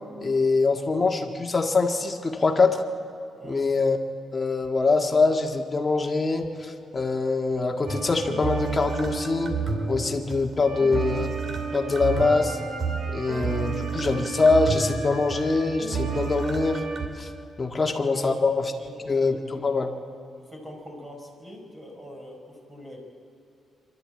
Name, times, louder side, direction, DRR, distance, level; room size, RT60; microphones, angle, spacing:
voice 1, 0.2-2.8 3.4-4.0 4.3-9.5 9.9-11.3 11.7-12.6 13.1-16.8 17.2-17.3 17.6-18.6 19.1-19.9, left 3 dB, 25° left, 2 dB, 1.7 m, -23 dB
voice 2, 3.4-3.7 17.7-18.4 18.7-19.1 19.5-19.7 20.5-23.0, equal, 20° right, 1 dB, 4.6 m, -43 dB
sound 1, 7.9-17.1, right 5 dB, 50° right, 2.6 m, -30 dB
26.0 x 12.0 x 8.8 m, 2.7 s
cardioid pair, 130°, 0 cm